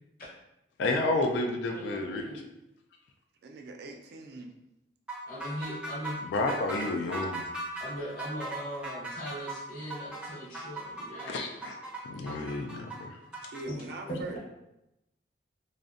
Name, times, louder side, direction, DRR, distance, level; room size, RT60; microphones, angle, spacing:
voice 1, 0.8-2.3 6.2-7.4 11.2-11.8 12.0-13.2, left 2 dB, 75° left, 3 dB, 0.3 m, -30 dB
voice 2, 1.7-2.4 5.3-6.1 7.8-11.4 13.7-13.8, equal, 50° left, -5 dB, 0.8 m, -39 dB
voice 3, 3.4-4.5 13.4-14.4, right 2 dB, 65° right, 3 dB, 0.3 m, -41 dB
sound 1, 5.1-13.6, right 2 dB, 5° right, 0.5 m, -39 dB
2.5 x 2.1 x 2.4 m, 0.88 s
head